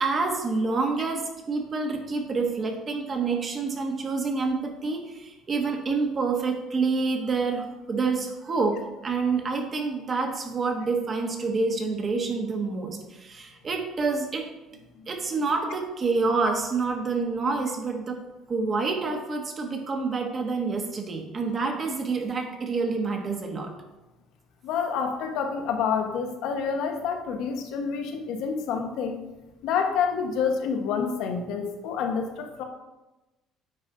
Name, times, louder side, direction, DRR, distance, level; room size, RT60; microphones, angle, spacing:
voice 1, 0.0-14.5 15.1-18.2 18.5-23.7, right 4 dB, 30° right, 3 dB, 1.1 m, -27 dB
voice 2, 24.6-29.2 29.6-32.6, left 6 dB, 70° left, 5 dB, 1.1 m, -28 dB
8.8 x 5.1 x 3.9 m, 1.1 s
cardioid pair, 130°, 0 cm